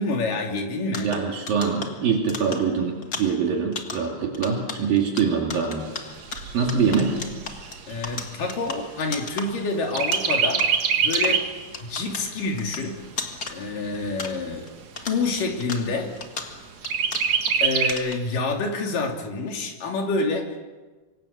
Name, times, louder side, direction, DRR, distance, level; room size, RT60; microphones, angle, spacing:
voice 1, 0.0-1.1 7.9-10.6 11.0-11.4 11.8-13.0 13.5-14.7 15.1-16.1 17.6-20.6, left 3 dB, 65° left, 1 dB, 4.5 m, -27 dB
sound 1, 0.9-14.7 15.0-17.6 17.9-18.4, left 4 dB, 35° left, 1.7 m, -37 dB
voice 2, 1.0-5.9 6.5-7.2, right 6 dB, 70° right, 0 dB, 4.2 m, -24 dB
Chirp tweet, 5.8-9.6 9.9-11.6 12.1-12.2 12.5-13.5 14.1-14.2 14.5-14.6 15.1-15.6 16.9-17.9, right 6 dB, 55° right, 2.5 m, -25 dB
26.0 x 24.0 x 6.8 m, 1.3 s
omnidirectional pair, 4.2 m